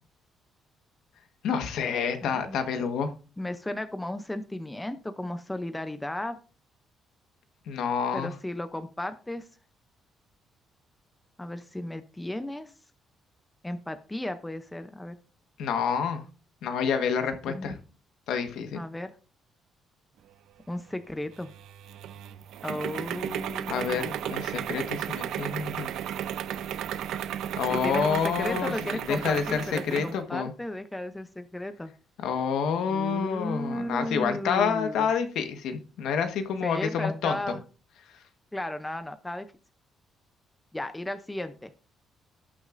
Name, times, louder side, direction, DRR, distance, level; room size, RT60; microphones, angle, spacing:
voice 1, 1.4-3.1 7.7-8.3 15.6-16.2 16.6-17.8 18.3-18.8 23.7-25.9 27.6-30.5 32.2-37.5, left 6 dB, 75° left, 7 dB, 1.3 m, -28 dB
voice 2, 2.2-2.6 3.4-6.4 8.1-9.5 11.4-12.7 13.6-15.2 17.5-17.8 18.7-19.1 20.7-21.5 22.6-24.4 27.7-31.9 32.9-35.1 36.6-37.6 38.5-39.5 40.7-41.7, left 1 dB, 5° left, 9 dB, 0.6 m, -35 dB
sound 1, 21.4-30.2, right 10 dB, 75° right, 0.6 m, -34 dB
17.5 x 6.3 x 2.6 m, 0.36 s
cardioid pair, 175°, 0 cm